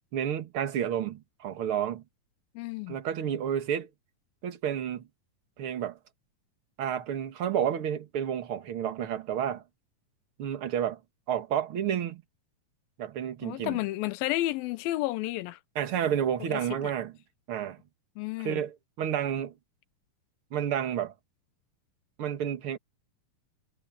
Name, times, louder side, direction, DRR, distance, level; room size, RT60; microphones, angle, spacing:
voice 1, 0.1-2.0 2.9-3.9 4.4-5.1 5.6-6.0 6.8-9.6 10.4-11.0 11.3-12.2 13.0-13.8 15.8-17.1 17.5-17.8 18.4-19.5 20.5-21.1 22.2-22.8, right 9 dB, 45° right, 2.0 m, -30 dB
voice 2, 2.6-3.0 13.4-15.6 16.5-16.6 18.2-18.6, left 17 dB, 80° left, 2.4 m, -31 dB
omnidirectional pair, 4.3 m